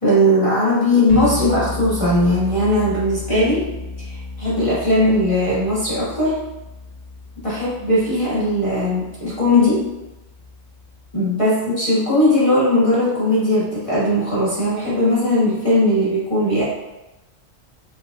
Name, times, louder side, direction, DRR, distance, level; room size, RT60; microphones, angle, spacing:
voice 1, 0.0-3.7 4.0-6.4 7.4-9.8 11.1-16.6, left 1 dB, 25° left, -10 dB, 1.5 m, -18 dB
sound 1, 1.1-11.1, left 2 dB, 70° right, 1.5 m, -34 dB
5.3 x 3.5 x 2.3 m, 1.0 s
omnidirectional pair, 1.4 m